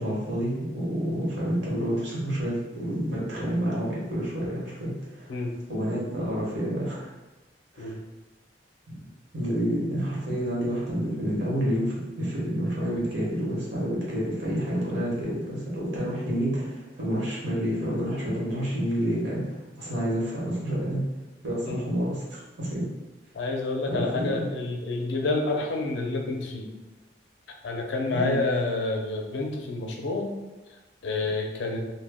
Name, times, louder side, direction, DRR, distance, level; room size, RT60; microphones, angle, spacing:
voice 1, 0.0-5.4 5.7-7.1 7.7-7.9 8.9-9.0 9.3-21.0 21.4-22.9 23.9-24.3 28.1-28.4, equal, 75° right, -6 dB, 1.0 m, -29 dB
voice 2, 23.3-26.7 27.6-30.3 31.0-31.8, left 3 dB, 70° left, 1 dB, 0.4 m, -28 dB
2.1 x 2.0 x 3.4 m, 1.1 s
head